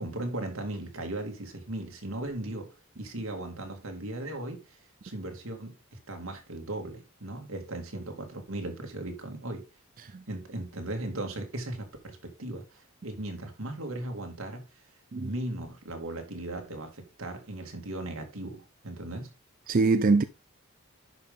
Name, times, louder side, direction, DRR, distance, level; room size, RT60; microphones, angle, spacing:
voice 1, 0.0-4.8 5.0-9.7 10.3-14.6 15.2-19.3, right 1 dB, 80° right, 2.3 m, -37 dB
voice 2, 19.7-20.2, right 3 dB, 40° right, 0.4 m, -23 dB
10.5 x 5.5 x 3.6 m
head